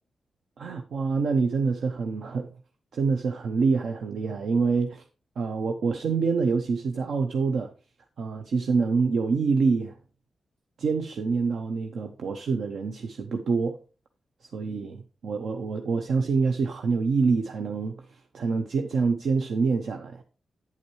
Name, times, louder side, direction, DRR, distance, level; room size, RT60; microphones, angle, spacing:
voice 1, 0.6-2.5 2.9-5.0 5.4-7.7 8.2-10.0 10.8-13.8 14.5-20.2, right 4 dB, 75° right, 0.7 m, -26 dB
9.1 x 8.4 x 3.1 m
wide cardioid pair, 125°, 0 cm